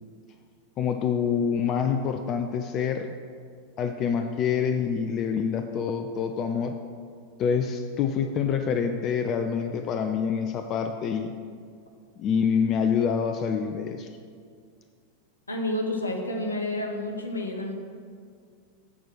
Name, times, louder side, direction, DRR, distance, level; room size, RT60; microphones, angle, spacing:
voice 1, 0.8-3.1 3.8-6.8 7.4-11.3 12.2-14.1, left 7 dB, 35° left, 7 dB, 0.4 m, -26 dB
voice 2, 15.5-17.7, left 1 dB, 75° left, 2 dB, 1.0 m, -30 dB
8.0 x 4.4 x 6.2 m, 2.1 s
figure-of-eight pair, 90°, 0 cm